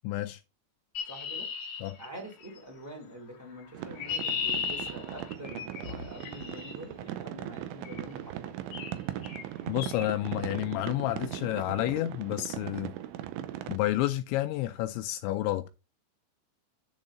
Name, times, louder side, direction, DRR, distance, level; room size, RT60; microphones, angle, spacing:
voice 1, 0.0-0.4 1.8-2.0 9.7-12.9 13.7-15.7, left 15 dB, 80° left, 2.7 m, -30 dB
Chirp tweet, 0.9-2.6 3.6-6.7 7.8-8.1 8.7-9.0 9.2-9.5 9.8-10.1, left 6 dB, 65° left, 1.7 m, -36 dB
voice 2, 1.0-1.5 2.0-8.6, equal, 5° right, 2.2 m, -45 dB
sound 1, 3.7-13.8, right 12 dB, 80° right, 3.0 m, -39 dB
10.5 x 4.4 x 5.0 m
omnidirectional pair, 5.6 m